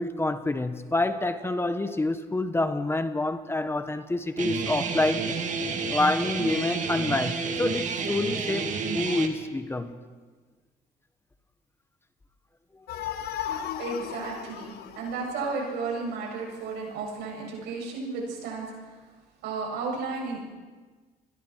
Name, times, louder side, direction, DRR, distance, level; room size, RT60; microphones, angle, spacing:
voice 1, 0.0-5.2 5.9-10.0 13.1-13.2, left 2 dB, 15° left, 10 dB, 1.2 m, -27 dB
Guitar, 4.4-9.3, right 4 dB, 45° right, 2.3 m, -30 dB
sound 1, 12.9-16.3, left 10 dB, 70° left, 1.3 m, -36 dB
voice 2, 13.8-18.7 19.4-20.4, right 4 dB, 85° right, -1 dB, 8.0 m, -33 dB
28.5 x 21.0 x 4.6 m, 1.4 s
cardioid pair, 110°, 17 cm